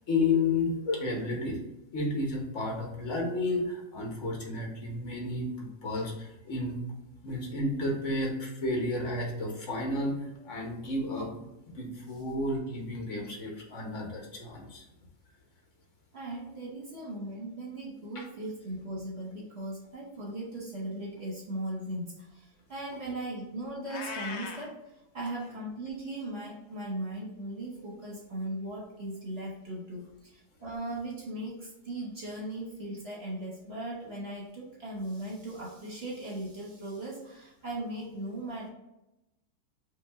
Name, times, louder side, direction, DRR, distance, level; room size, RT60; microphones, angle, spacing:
voice 1, 0.1-1.6 1.9-6.8 7.2-14.8 18.1-18.2, left 2 dB, 50° left, -1 dB, 1.4 m, -32 dB
voice 2, 16.1-24.8 25.1-38.7, right 1 dB, 40° right, -4 dB, 1.1 m, -38 dB
Meow, 23.9-24.7, left 4 dB, 80° left, 0.6 m, -39 dB
5.4 x 2.7 x 3.5 m, 0.91 s
omnidirectional pair, 1.8 m